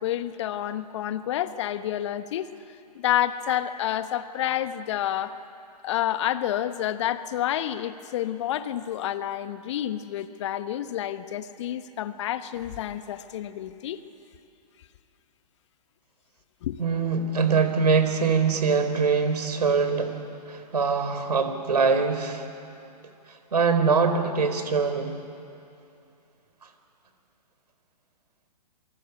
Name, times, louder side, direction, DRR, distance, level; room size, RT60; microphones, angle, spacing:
voice 1, 0.0-2.5 2.9-5.4 5.8-14.0 16.6-16.8, left 11 dB, 45° left, 12 dB, 1.2 m, -29 dB
voice 2, 16.8-20.1 20.5-22.4 23.5-25.1, right 5 dB, 70° right, 8 dB, 4.2 m, -23 dB
27.5 x 24.5 x 8.4 m, 2.6 s
figure-of-eight pair, 125°, 21 cm